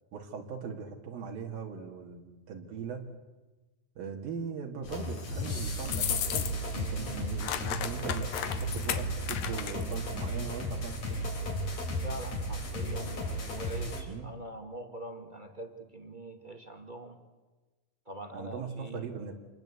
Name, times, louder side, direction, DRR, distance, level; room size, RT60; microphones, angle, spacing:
voice 1, 0.1-3.1 4.0-11.3 14.1-14.3 18.3-19.3, right 6 dB, 85° right, 1 dB, 3.9 m, -40 dB
sound 1, 4.8-14.0, equal, 50° left, 5.2 m, -34 dB
sound 2, 5.9-6.8 7.1-10.0, left 10 dB, 80° left, 3.1 m, -34 dB
voice 2, 12.0-17.2 18.0-19.1, right 1 dB, 20° right, 5 dB, 1.4 m, -43 dB
28.0 x 21.5 x 8.4 m, 1.2 s
omnidirectional pair, 4.0 m